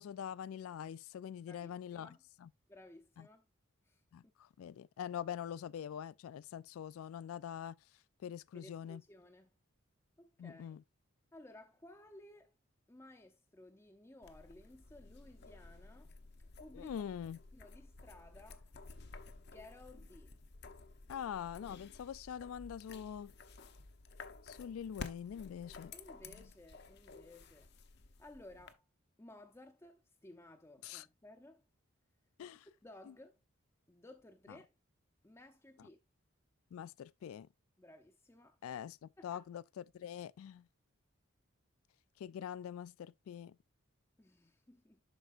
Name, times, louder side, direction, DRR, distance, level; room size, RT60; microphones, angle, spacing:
voice 1, 0.0-2.1 2.4-2.5 3.2-3.3 4.1-7.7 8.2-9.0 10.4-10.8 16.7-17.4 21.1-23.3 24.4-25.9 26.3-26.4 30.8-31.1 32.4-32.7 34.5-34.6 36.7-37.5 38.6-39.0 39.2-40.7 42.2-43.6, left 9 dB, 80° left, 0.3 m, -44 dB
voice 2, 1.5-2.2 2.7-3.5 3.8-4.0 8.5-9.5 10.2-10.8 11.3-12.5 12.9-16.1 16.6-16.9 17.5-18.7 19.3-20.4 25.9-27.7 28.2-28.8 29.2-31.6 32.4-33.4 33.9-34.7 35.2-36.0 37.8-38.8 39.2-39.5 44.2-45.0, left 1 dB, 15° left, 0.5 m, -57 dB
sound 1, 14.2-28.7, left 3 dB, 50° left, 0.7 m, -53 dB
11.5 x 4.4 x 2.5 m
head